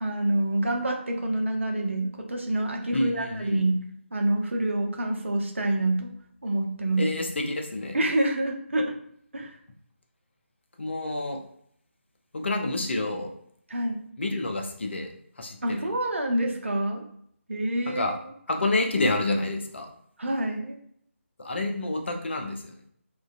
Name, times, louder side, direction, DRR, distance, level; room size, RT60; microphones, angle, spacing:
voice 1, 0.0-3.8 4.1-6.1 6.4-7.1 7.9-9.0 9.3-9.6 13.7-14.0 15.6-17.0 17.5-18.1 20.2-20.8, right 1 dB, 65° right, 2 dB, 0.6 m, -27 dB
voice 2, 2.9-3.6 7.0-8.0 10.8-11.4 12.3-13.3 14.2-15.1 15.4-15.9 17.9-18.1 18.5-19.9 21.4-22.7, left 2 dB, 55° left, 3 dB, 0.5 m, -28 dB
2.3 x 2.2 x 2.5 m, 0.67 s
figure-of-eight pair, 155°, 7 cm